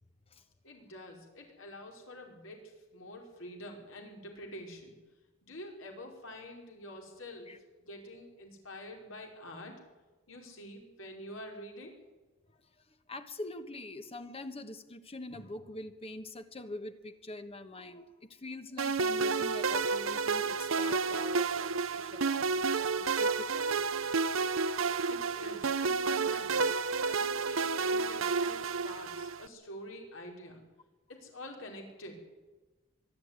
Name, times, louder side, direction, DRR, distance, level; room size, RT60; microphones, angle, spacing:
voice 1, 0.6-4.9 5.4-9.7 10.3-11.9 25.0-26.6 27.0-30.6 31.1-32.3, left 1 dB, 75° left, 2 dB, 4.8 m, -47 dB
voice 2, 12.9-25.1 29.1-29.2, left 2 dB, 30° left, 9 dB, 1.2 m, -45 dB
sound 1, 18.8-29.5, right 4 dB, 75° right, 0.7 m, -30 dB
23.5 x 12.5 x 9.6 m, 1.2 s
head